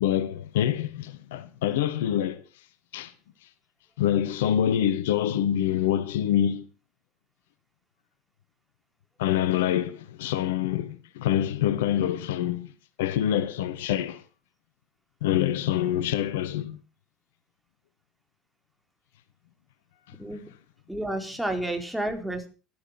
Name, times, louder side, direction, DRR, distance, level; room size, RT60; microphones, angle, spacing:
voice 1, 0.0-2.4 2.9-3.1 4.0-6.7 9.2-12.7 13.0-14.2 15.2-16.8, left 11 dB, 70° left, 1.1 m, -26 dB
voice 2, 20.9-22.5, right 1 dB, 5° right, 4.3 m, -30 dB
13.5 x 12.5 x 5.9 m
figure-of-eight pair, 65°, 0 cm